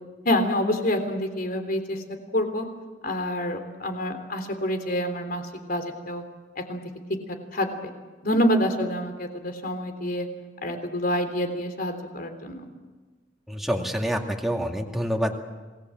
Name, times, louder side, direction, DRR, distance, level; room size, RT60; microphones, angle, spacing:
voice 1, 0.3-2.0 2.3-2.7 3.0-6.2 6.6-6.8 7.5-7.9 8.2-10.3 10.6-12.7, left 1 dB, 55° left, 7 dB, 3.4 m, -27 dB
voice 2, 13.5-15.3, equal, ahead, 1 dB, 2.2 m, -27 dB
27.0 x 20.0 x 7.7 m, 1.3 s
head